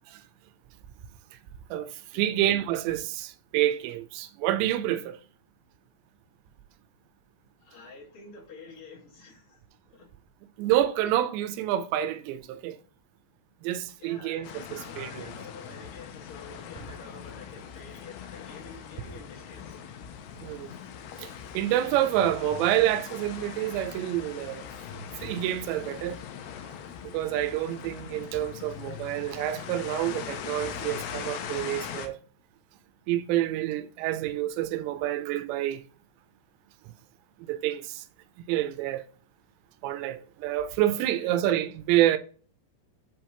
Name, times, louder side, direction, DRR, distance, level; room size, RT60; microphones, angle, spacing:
voice 1, 1.7-5.2 10.6-12.8 13.6-15.3 20.4-20.7 21.2-24.7 25.2-26.2 27.1-32.2 33.1-35.8 37.5-38.0 38.5-39.1 39.8-42.2, right 13 dB, 85° right, 2.8 m, -28 dB
voice 2, 7.6-9.6 9.9-10.1 14.0-19.8 41.0-41.4, left 4 dB, 55° left, 3.9 m, -48 dB
sound 1, 14.4-32.1, left 8 dB, 80° left, 2.5 m, -41 dB
7.6 x 4.4 x 2.8 m
omnidirectional pair, 5.0 m